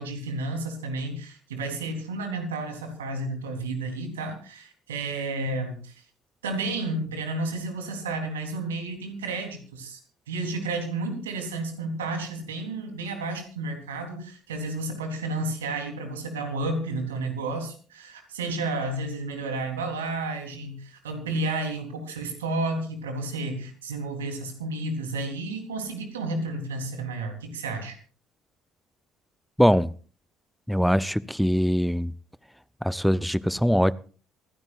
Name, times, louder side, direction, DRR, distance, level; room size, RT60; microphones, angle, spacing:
voice 1, 0.0-6.0 6.4-10.0 10.3-28.0, right 2 dB, 80° right, 3.7 m, -31 dB
voice 2, 29.6-29.9 30.7-32.1 32.8-33.9, equal, ahead, 0.7 m, -22 dB
26.5 x 16.0 x 2.5 m
figure-of-eight pair, 50°, 0 cm